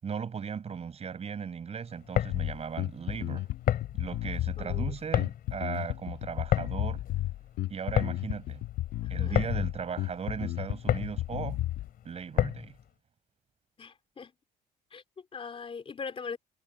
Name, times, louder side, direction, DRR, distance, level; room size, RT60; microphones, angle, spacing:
voice 1, 0.0-3.5 3.9-7.0 7.7-8.6 9.1-11.6 12.0-12.7, right 6 dB, 40° right, 7.3 m, -37 dB
sound 1, 1.9-12.8, left 11 dB, 60° left, 4.7 m, -32 dB
Bass guitar, 2.3-11.9, left 15 dB, 80° left, 1.6 m, -33 dB
voice 2, 4.6-4.9 9.0-9.4 13.8-14.3 14.9-16.4, left 5 dB, 35° left, 4.0 m, -41 dB
cardioid pair, 110°, 17 cm